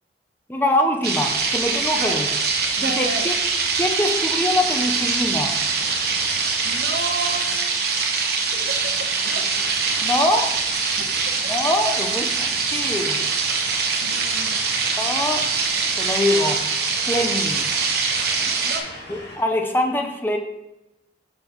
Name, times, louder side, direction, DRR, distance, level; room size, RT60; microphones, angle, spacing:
voice 1, 0.5-2.3 2.8-3.3 3.8-5.6 10.0-10.6 11.5-13.2 15.0-15.5 16.0-16.7 17.1-17.7 19.1-20.4, left 1 dB, 10° left, 3 dB, 0.7 m, -23 dB
sound 1, 1.0-18.8, right 5 dB, 65° right, 1.0 m, -23 dB
sound 2, 1.2-19.4, left 1 dB, 65° left, 1.7 m, -39 dB
voice 2, 2.8-3.3 6.6-7.8 8.5-8.7 9.2-9.5 11.0-11.1 14.0-14.6 18.6-18.9, right 3 dB, 85° right, 2 dB, 1.2 m, -32 dB
5.9 x 4.5 x 5.2 m, 0.92 s
head